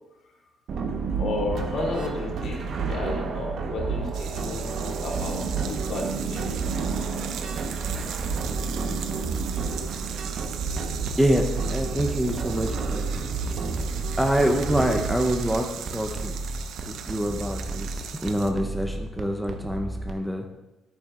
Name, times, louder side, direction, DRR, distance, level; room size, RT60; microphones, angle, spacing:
sound 1, 0.7-15.1, right 5 dB, 60° right, 1.2 m, -30 dB
voice 1, 1.2-4.7 5.0-6.7 8.0-8.1, left 2 dB, 55° left, -1 dB, 2.7 m, -32 dB
sound 2, 4.1-18.5, right 8 dB, 75° right, 0.8 m, -39 dB
sound 3, 8.0-9.4 10.7-20.1, right 2 dB, 40° right, 1.1 m, -35 dB
voice 2, 11.2-13.3 14.2-16.3 16.9-17.9 18.2-20.5, equal, 5° right, 3 dB, 0.8 m, -26 dB
10.5 x 9.0 x 3.8 m, 0.99 s
cardioid pair, 125°, 0 cm